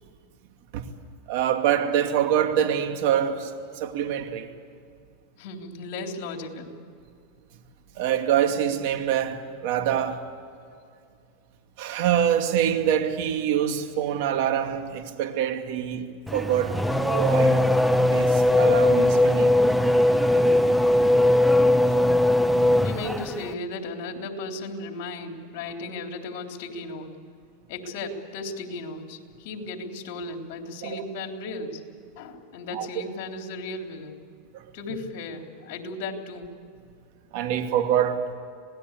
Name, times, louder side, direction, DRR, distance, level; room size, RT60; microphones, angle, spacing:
voice 1, 1.3-3.5 3.8-4.5 8.0-10.2 11.8-17.6 18.1-19.5 30.8-31.0 32.7-32.9 34.5-34.6 37.3-38.3, right 9 dB, 60° right, 2.4 m, -25 dB
voice 2, 5.4-6.7 22.8-27.1 27.7-31.8 32.2-34.2 34.7-36.5, left 3 dB, 60° left, 3.6 m, -35 dB
Race car auto racing / Accelerating revving vroom, 16.3-23.5, left 1 dB, ahead, 0.8 m, -20 dB
26.5 x 19.0 x 8.4 m
supercardioid pair, 130°, 0 cm